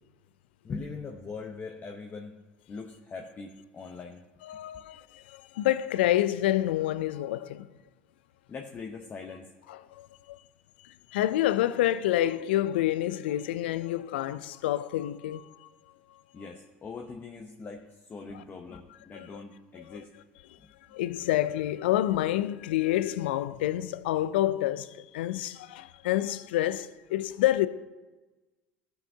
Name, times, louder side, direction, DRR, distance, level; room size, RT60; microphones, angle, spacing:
voice 1, 0.6-2.4 2.7-4.2 8.5-9.5 16.3-20.1, left 4 dB, 35° left, 0.8 m, -41 dB
voice 2, 4.4-7.7 9.7-10.4 10.8-15.7 16.4-16.5 18.3-18.4 19.1-19.4 19.9-20.0 20.9-27.7, left 13 dB, 80° left, 0.3 m, -28 dB
14.5 x 5.8 x 2.7 m
hypercardioid pair, 70°, 6 cm